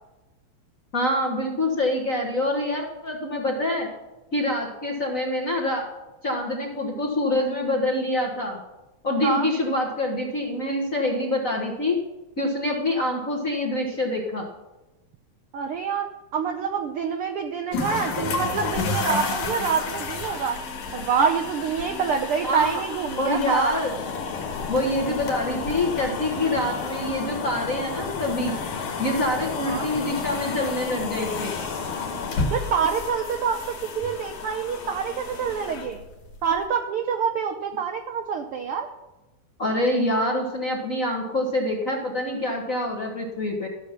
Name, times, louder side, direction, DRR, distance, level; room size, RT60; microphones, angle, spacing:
voice 1, 0.9-3.9 4.3-5.9 6.2-8.6 9.0-12.0 12.4-14.5 22.5-22.8 23.2-24.0 24.7-28.6 29.0-31.5 39.6-43.7, left 1 dB, 40° left, -1 dB, 1.3 m, -26 dB
voice 2, 15.5-16.1 16.3-20.6 20.9-23.8 29.6-29.9 32.5-36.1 36.4-38.9, right 6 dB, 75° right, 4 dB, 1.3 m, -26 dB
sound 1, 17.7-36.6, left 4 dB, 80° left, 3.1 m, -33 dB
sound 2, 23.8-32.6, left 5 dB, 65° left, 1.3 m, -33 dB
14.0 x 7.2 x 5.8 m, 1.0 s
omnidirectional pair, 3.3 m